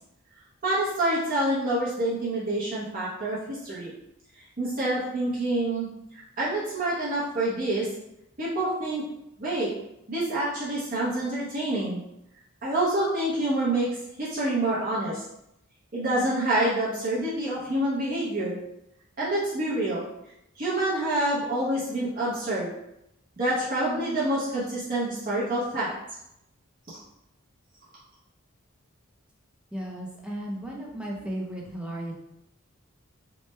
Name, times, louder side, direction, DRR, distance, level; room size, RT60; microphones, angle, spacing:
voice 1, 0.6-3.9 4.6-5.9 6.1-7.9 8.4-9.0 9.4-9.7 10.1-12.0 12.6-13.9 14.2-15.2 15.9-18.6 19.2-20.1 20.6-22.7 23.4-25.9 26.9-27.0, right 1 dB, 40° right, -8 dB, 0.7 m, -27 dB
voice 2, 29.7-32.1, right 1 dB, 5° right, -3 dB, 0.5 m, -35 dB
3.1 x 2.1 x 3.2 m, 0.83 s
head